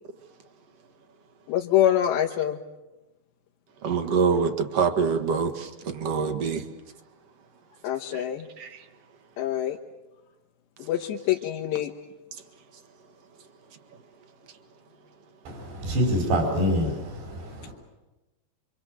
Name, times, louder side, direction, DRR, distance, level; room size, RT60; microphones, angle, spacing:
voice 1, 1.5-2.6 7.8-8.5 9.4-9.8 10.8-11.9, left 11 dB, 85° left, 3.4 m, -25 dB
voice 2, 3.8-6.7 8.1-8.2 8.6-8.8, right 5 dB, 50° right, 2.0 m, -25 dB
voice 3, 15.5-17.7, equal, 75° right, 6.8 m, -26 dB
28.5 x 25.5 x 7.7 m
omnidirectional pair, 4.9 m